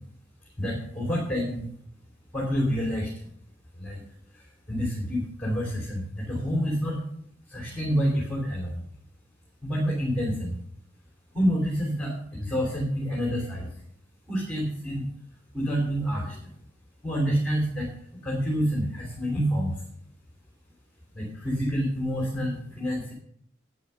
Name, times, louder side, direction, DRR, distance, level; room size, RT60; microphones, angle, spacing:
voice 1, 0.6-1.7 2.3-3.1 3.7-4.0 4.3-7.0 7.5-8.8 9.6-10.6 11.3-13.8 14.3-15.1 15.5-16.6 17.0-19.8 21.1-23.1, equal, 5° left, -3 dB, 3.3 m, -28 dB
10.5 x 9.7 x 5.7 m, 0.68 s
head